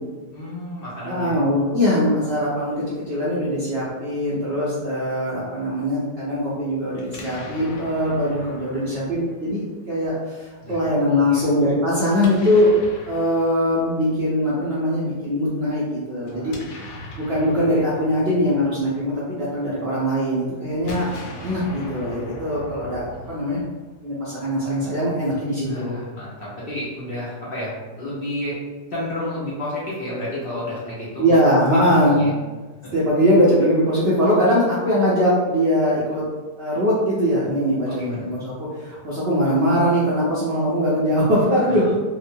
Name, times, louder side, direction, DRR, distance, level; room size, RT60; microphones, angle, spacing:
voice 1, 0.3-1.4 10.6-11.4 16.2-16.9 23.2-23.3 25.6-28.5 28.9-31.3 31.9-32.3 32.8-32.9 37.9-38.2 41.7-41.8, left 1 dB, 60° left, -8 dB, 0.6 m, -32 dB
voice 2, 1.0-12.7 13.1-16.6 17.3-21.1 21.4-23.6 24.0-26.0 31.2-32.2 32.9-36.2 36.6-42.0, equal, 65° right, -8 dB, 0.6 m, -21 dB
Explosion, 7.0-10.0 12.1-14.3 16.2-19.6 20.7-24.1, left 1 dB, 80° left, 1.1 m, -40 dB
2.9 x 2.0 x 2.5 m, 1.3 s
omnidirectional pair, 1.7 m